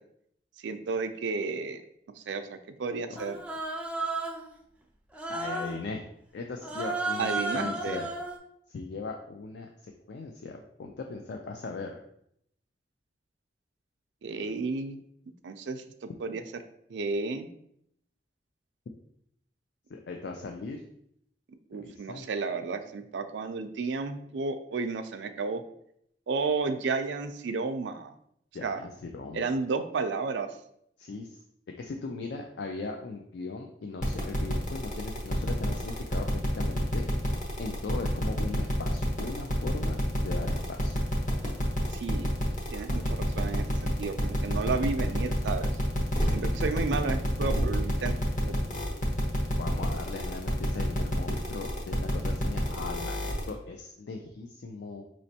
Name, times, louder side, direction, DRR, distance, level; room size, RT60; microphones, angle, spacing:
voice 1, 0.6-1.8 2.2-3.4 7.2-8.0 14.2-15.0 15.4-16.4 16.9-17.5 21.7-25.6 26.3-28.2 28.6-28.8 29.3-30.5 41.9-42.3 42.7-45.7 46.3-48.6, right 4 dB, 85° right, 8 dB, 0.4 m, -32 dB
Human voice, 3.2-4.5 5.1-5.8 6.6-8.4, right 2 dB, 5° right, 0.4 m, -33 dB
voice 2, 5.3-8.1 8.7-12.0 19.9-20.8 21.7-22.3 28.5-29.5 31.0-31.4 31.8-37.1 37.6-41.0 49.6-55.0, left 3 dB, 65° left, 3 dB, 0.4 m, -39 dB
sound 1, 34.0-53.5, equal, 45° left, 0.9 m, -28 dB
5.1 x 3.1 x 2.7 m, 0.72 s
head